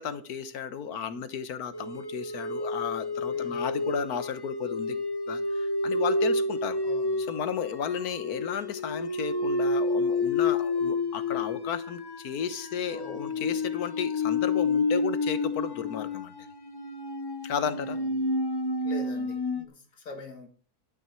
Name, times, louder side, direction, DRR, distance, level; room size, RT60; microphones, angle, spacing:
voice 1, 0.0-5.0 5.3-6.8 7.3-16.3 17.4-18.0, left 7 dB, 85° left, 1.5 m, -33 dB
sound 1, 1.7-19.7, left 3 dB, 30° left, 0.4 m, -30 dB
voice 2, 3.3-3.9 6.8-7.2 12.9-13.6 17.7-18.2 18.8-20.5, left 4 dB, 60° left, 2.0 m, -45 dB
11.5 x 9.8 x 4.5 m
omnidirectional pair, 1.6 m